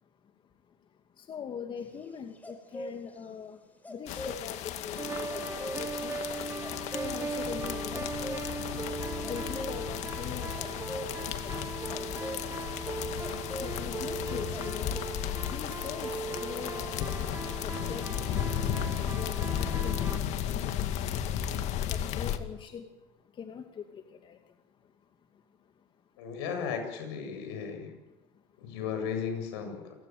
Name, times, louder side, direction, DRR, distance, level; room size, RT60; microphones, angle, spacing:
voice 1, 0.0-26.3 28.3-28.6, left 7 dB, 40° left, 5 dB, 2.4 m, -44 dB
sound 1, 1.8-3.2 3.8-4.4 5.3-6.0 6.6-7.4 7.8-8.5 9.1-9.8 10.6-11.1 11.9-12.4 13.2-14.0 14.3-14.7, equal, 10° left, 4.7 m, -41 dB
sound 2, 4.1-22.4, left 10 dB, 55° left, 2.2 m, -34 dB
sound 3, 5.0-20.2, right 4 dB, 20° right, 1.2 m, -39 dB
voice 2, 26.2-27.9 28.6-29.9, left 6 dB, 75° left, 6 dB, 7.9 m, -35 dB
28.5 x 17.5 x 9.3 m, 1.1 s
supercardioid pair, 95°, 14 cm